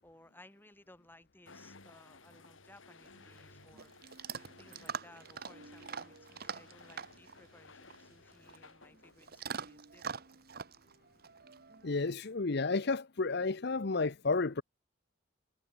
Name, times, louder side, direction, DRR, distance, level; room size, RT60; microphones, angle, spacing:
voice 1, 0.0-3.9 4.6-10.3, left 1 dB, 10° left, 6.1 m, -60 dB
sound 1, 1.5-9.7, left 3 dB, 90° left, 4.7 m, -58 dB
Chewing mastication / Dog, 3.0-12.1, right 6 dB, 50° right, 1.2 m, -45 dB
voice 2, 11.8-14.6, left 3 dB, 55° left, 0.8 m, -31 dB
head